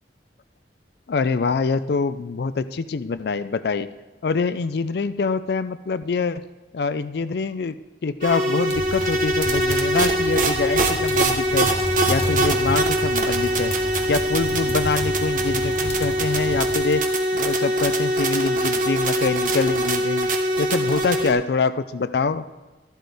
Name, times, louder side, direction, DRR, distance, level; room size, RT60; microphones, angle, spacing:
voice 1, 1.1-3.9 4.2-6.4 6.7-11.7 12.1-13.7 14.1-17.0 17.3-20.3 20.6-22.4, left 4 dB, 60° left, 14 dB, 0.4 m, -25 dB
sound 1, 8.2-21.3, right 1 dB, 45° right, 1.1 m, -22 dB
sound 2, 8.7-16.9, left 1 dB, 35° left, 1.3 m, -33 dB
sound 3, 11.5-16.8, left 1 dB, 15° left, 0.6 m, -35 dB
13.0 x 11.5 x 3.5 m, 1.2 s
head